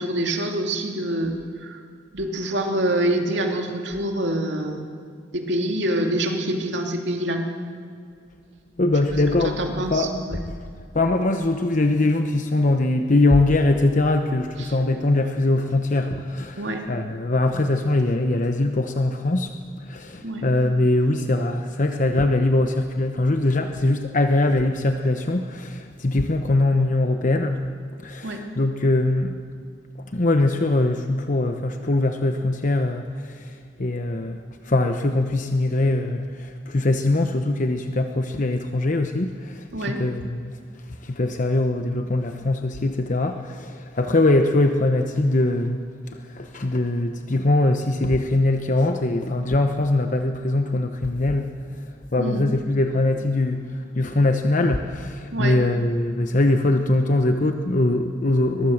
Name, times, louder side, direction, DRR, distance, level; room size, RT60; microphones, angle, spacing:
voice 1, 0.0-1.4 1.6-1.8 2.1-5.0 5.3-7.4 9.6-10.4 14.6-14.7 16.6-16.8 20.2-20.5 28.2-28.4 39.7-40.0 52.2-52.4 55.3-55.6, right 1 dB, 70° right, 3 dB, 2.7 m, -26 dB
voice 2, 8.8-10.5 10.9-19.5 19.9-27.6 28.0-29.4 30.1-40.6 41.0-45.8 46.1-51.5 52.1-58.7, left 2 dB, 45° left, 6 dB, 0.9 m, -22 dB
22.5 x 21.0 x 7.3 m, 2.2 s
head